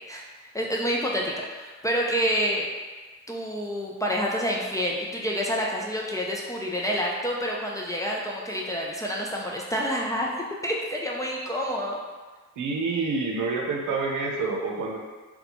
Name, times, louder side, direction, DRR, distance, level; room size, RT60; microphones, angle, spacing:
voice 1, 0.1-2.7 3.3-10.3 10.6-12.0, equal, 10° left, -3 dB, 0.4 m, -28 dB
voice 2, 12.6-15.0, right 3 dB, 75° right, 0 dB, 0.6 m, -27 dB
2.8 x 2.2 x 4.1 m, 1.4 s
cardioid pair, 115°, 30 cm